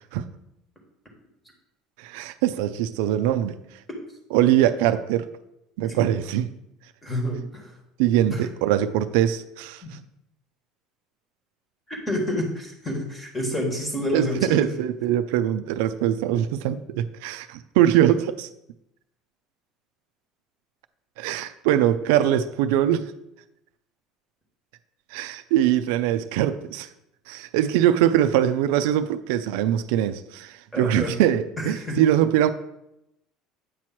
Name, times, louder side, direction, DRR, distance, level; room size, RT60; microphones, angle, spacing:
voice 1, 2.0-3.6 4.3-5.3 5.8-6.5 8.0-9.8 14.1-18.5 21.2-23.1 25.1-26.9 27.3-32.5, right 11 dB, 80° right, 10 dB, 0.4 m, -22 dB
voice 2, 7.0-7.7 8.3-8.5 9.8-9.9 11.9-14.7 30.7-31.1 31.6-32.0, left 1 dB, 10° left, 1 dB, 1.4 m, -28 dB
8.5 x 3.1 x 5.8 m, 0.84 s
cardioid pair, 160°, 0 cm